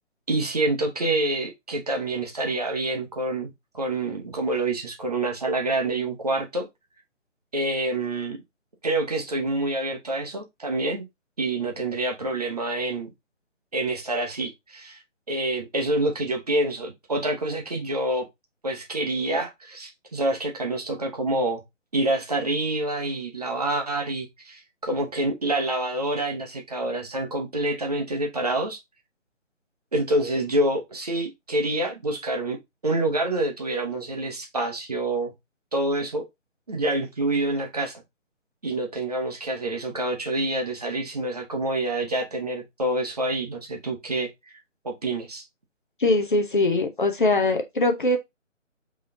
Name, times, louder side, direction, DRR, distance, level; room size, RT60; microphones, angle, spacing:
voice 1, 0.3-6.7 7.5-8.4 8.8-11.0 11.4-13.1 13.7-15.0 15.3-18.3 18.6-21.6 21.9-28.8 29.9-32.6 32.8-35.3 35.7-36.2 36.7-38.0 38.6-44.3 44.8-45.4, right 2 dB, 30° right, 0.8 m, -27 dB
voice 2, 46.0-48.2, left 2 dB, 40° left, 0.7 m, -22 dB
4.0 x 3.1 x 3.7 m
figure-of-eight pair, 150°, 38 cm